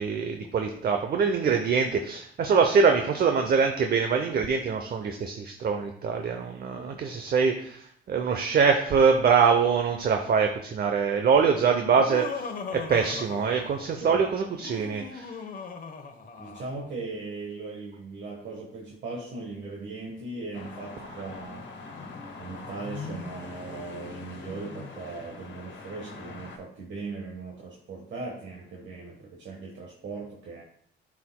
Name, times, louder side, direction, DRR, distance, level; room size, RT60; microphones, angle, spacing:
voice 1, 0.0-15.3, right 5 dB, 50° right, 5 dB, 0.7 m, -24 dB
Laughter, 11.9-14.0 14.5-16.8, left 5 dB, 45° left, 1.0 m, -38 dB
voice 2, 16.4-21.6 22.4-30.6, right 3 dB, 65° right, -1 dB, 1.3 m, -39 dB
sound 1, 20.5-26.6, left 4 dB, 70° left, 1.5 m, -41 dB
10.5 x 4.8 x 2.2 m, 0.64 s
cardioid pair, 90°, 20 cm